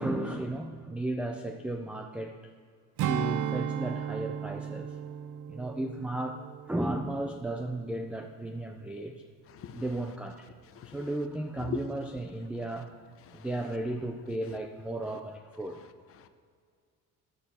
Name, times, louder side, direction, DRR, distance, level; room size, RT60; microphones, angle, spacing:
voice 1, 0.0-2.4 3.1-5.0 5.5-9.2 9.7-10.5 10.8-13.0 13.3-15.9, right 1 dB, 5° right, 5 dB, 0.4 m, -34 dB
Strum, 3.0-7.7 8.1-8.3, right 9 dB, 65° right, 0.6 m, -35 dB
voice 2, 9.6-9.8 10.8-11.0 11.6-11.8 13.3-13.5 16.2-16.3, left 9 dB, 40° left, 9 dB, 0.8 m, -39 dB
13.0 x 9.9 x 4.3 m, 2.1 s
cardioid pair, 155°, 33 cm